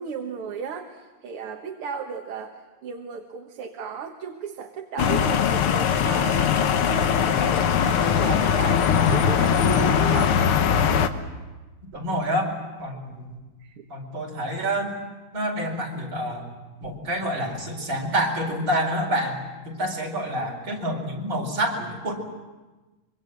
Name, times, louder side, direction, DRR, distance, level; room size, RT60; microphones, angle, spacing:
voice 1, 0.0-2.6 2.8-10.4 13.6-13.9, right 6 dB, 80° right, 3 dB, 2.3 m, -35 dB
sound 1, 5.0-11.1, left 7 dB, 80° left, 2.1 m, -21 dB
voice 2, 11.9-13.4 13.9-15.0 15.3-16.5 16.8-19.4 19.7-22.1, right 1 dB, 65° right, 0 dB, 5.5 m, -27 dB
25.0 x 24.0 x 7.8 m, 1.2 s
omnidirectional pair, 2.4 m